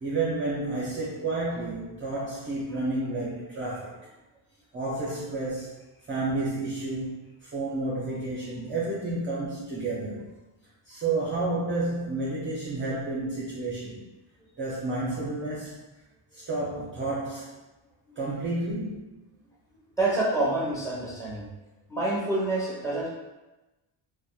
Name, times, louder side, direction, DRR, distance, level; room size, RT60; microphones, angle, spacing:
voice 1, 0.0-4.0 4.7-5.7 6.1-10.3 10.9-14.1 14.6-15.8 16.3-17.6 18.2-19.1, right 2 dB, 25° right, -7 dB, 0.5 m, -31 dB
voice 2, 20.0-21.5 21.9-23.1, right 2 dB, 5° left, -7 dB, 0.9 m, -27 dB
2.7 x 2.2 x 2.3 m, 1.1 s
cardioid pair, 90°, 48 cm